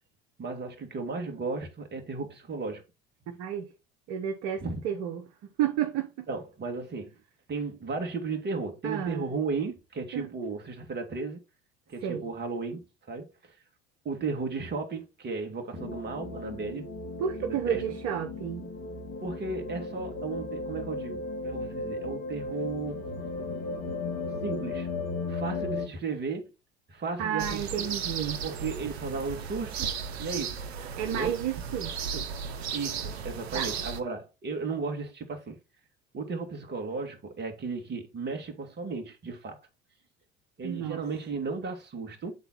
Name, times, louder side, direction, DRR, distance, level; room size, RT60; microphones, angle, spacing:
voice 1, 0.4-2.8 4.6-4.8 6.3-7.2 7.5-11.4 11.9-13.5 14.0-16.8 17.4-17.8 19.2-23.0 24.4-24.9 25.3-26.5 26.9-27.9 28.4-29.9 30.2-30.6 31.0-31.3 32.7-35.6 36.1-39.6 40.6-42.4, right 4 dB, 35° right, 2.1 m, -35 dB
voice 2, 3.4-3.7 4.1-5.3 5.6-6.3 8.8-9.3 10.1-10.3 12.0-12.3 17.2-18.7 27.2-28.4 31.0-32.4 33.5-33.7 40.6-41.0, right 9 dB, 60° right, 1.2 m, -31 dB
sound 1, 15.8-25.9, left 3 dB, 55° left, 3.1 m, -36 dB
sound 2, 27.4-34.0, right 6 dB, 80° right, 0.9 m, -35 dB
8.1 x 4.0 x 4.2 m
hypercardioid pair, 70°, 31 cm